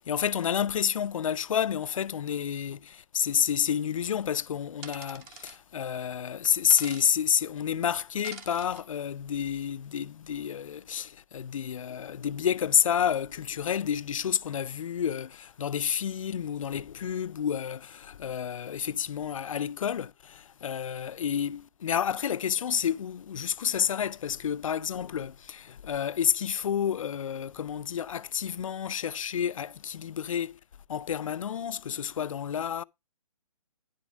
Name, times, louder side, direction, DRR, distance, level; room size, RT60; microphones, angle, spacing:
voice 1, 0.0-30.6 30.9-32.8, left 8 dB, 65° left, 0.4 m, -30 dB
sound 1, 4.8-5.6 6.7-7.1 8.2-8.8, right 5 dB, 15° right, 0.8 m, -45 dB
10.5 x 4.9 x 5.0 m
hypercardioid pair, 160°, 18 cm